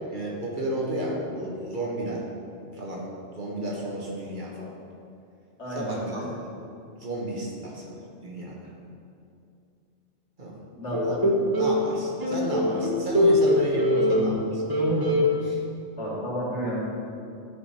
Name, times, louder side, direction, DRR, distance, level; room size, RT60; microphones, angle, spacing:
voice 1, 0.1-2.2 2.7-4.7 5.7-6.5 7.0-8.0 8.2-8.6 10.4-10.5 11.1-11.2 11.5-14.6 15.4-15.6, right 1 dB, 45° right, -4 dB, 1.3 m, -32 dB
voice 2, 5.6-6.3 10.7-11.3 16.0-16.8, equal, 75° left, -6 dB, 2.3 m, -32 dB
sound 1, 10.9-11.8 12.2-14.4 14.7-15.3, equal, 20° right, 1.0 m, -22 dB
10.5 x 5.1 x 4.3 m, 2.5 s
omnidirectional pair, 1.2 m